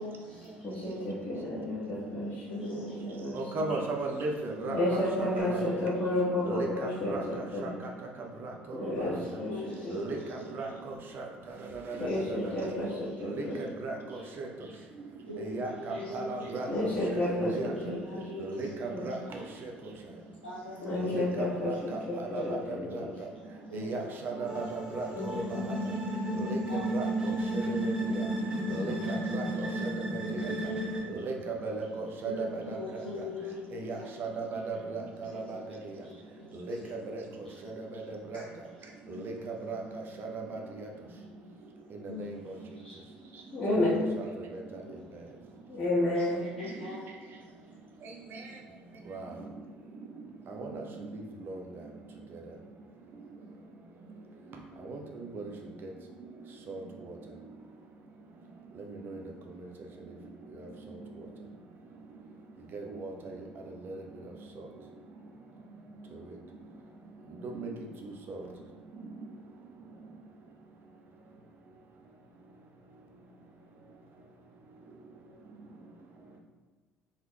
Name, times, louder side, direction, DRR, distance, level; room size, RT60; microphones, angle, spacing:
voice 1, 0.0-0.6 2.5-2.9 3.7-3.8 4.6-4.8 5.4-5.5 8.8-9.2 9.5-10.7 12.0-12.2 12.8-12.9 14.1-14.3 15.2-16.5 17.8-18.9 19.2-19.4 20.4-21.1 22.3-22.4 23.7-24.5 25.1-26.0 26.7-27.3 28.6-29.3 30.6-30.8 32.2-34.1 35.2-35.6 35.9-36.8 37.4-37.7 38.3-38.4 39.1-39.4 42.0-43.5 44.8-45.0 46.6-47.5, left 3 dB, 90° left, -9 dB, 0.5 m, -43 dB
voice 2, 0.6-3.7 4.7-7.7 8.7-10.0 12.0-13.7 16.6-19.1 20.8-23.0 28.4-28.7 43.5-44.1 45.7-46.4, left 1 dB, 35° left, -11 dB, 1.2 m, -31 dB
voice 3, 3.3-5.6 6.4-7.2 7.6-7.7 8.7-8.8 9.9-11.3 11.9-12.5 13.2-13.4 13.8-13.9 14.4-14.5 15.4-17.7 18.4-19.4 21.0-21.8 22.2-23.1 23.7-25.6 26.9-27.1 27.5-27.9 28.7-28.9 29.3-29.9 30.3-30.5 31.1-31.3 31.6-32.8 33.7-35.0 35.3-35.6 36.7-36.8 37.1-37.2 37.8-38.0 38.3-38.4 39.1-39.3 39.7-39.8 40.2-40.6 42.2-42.3 43.8-44.3 49.1-49.2 50.6-50.8 51.5-51.6 54.9-55.0 55.3-55.4 56.7-56.8 59.1-59.2 62.7-63.1 63.9-64.0 67.4-67.7 68.3-68.4, right 3 dB, 45° right, 1 dB, 0.6 m, -36 dB
sound 1, 24.5-31.0, right 1 dB, 15° right, 1.0 m, -32 dB
4.4 x 3.6 x 2.3 m, 1.3 s
figure-of-eight pair, 55°, 5 cm